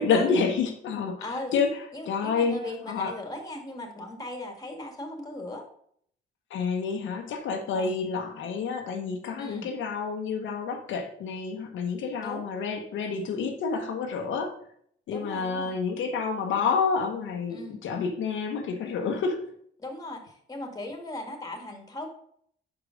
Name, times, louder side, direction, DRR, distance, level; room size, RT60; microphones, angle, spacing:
voice 1, 0.0-1.2 1.5-1.7 2.1-2.6 2.9-3.1 6.5-14.5 15.1-19.4, left 5 dB, 75° left, 3 dB, 1.1 m, -28 dB
voice 2, 1.2-1.5 1.9-5.7 7.7-7.9 9.4-9.7 12.2-12.4 15.1-15.8 17.5-17.8 19.8-22.1, left 1 dB, 20° left, 4 dB, 1.8 m, -38 dB
5.8 x 5.0 x 5.1 m, 0.64 s
cardioid pair, 90°, 20 cm